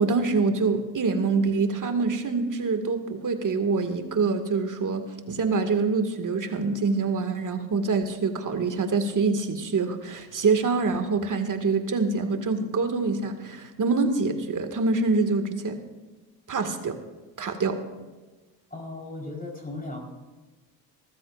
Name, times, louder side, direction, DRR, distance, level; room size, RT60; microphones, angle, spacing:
voice 1, 0.0-15.8 16.5-17.0 17.4-17.8, right 4 dB, 40° right, 6 dB, 2.2 m, -25 dB
voice 2, 18.7-20.0, left 2 dB, 15° left, -1 dB, 4.5 m, -36 dB
24.0 x 14.5 x 2.6 m, 1.2 s
supercardioid pair, 70°, 48 cm